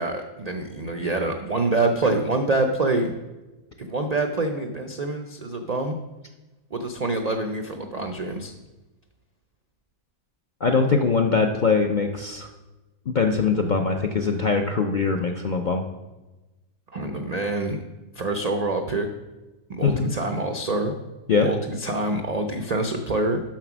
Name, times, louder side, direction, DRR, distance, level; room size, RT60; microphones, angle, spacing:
voice 1, 0.0-3.2 3.8-6.0 6.7-8.5 16.9-17.8 18.1-19.1 19.7-20.9 21.4-23.4, right 2 dB, 90° right, 5 dB, 0.3 m, -26 dB
voice 2, 10.6-12.5 13.1-15.8 19.8-20.1 21.3-21.5, left 4 dB, 65° left, 3 dB, 0.4 m, -22 dB
7.4 x 5.9 x 6.0 m, 1.1 s
omnidirectional pair, 1.5 m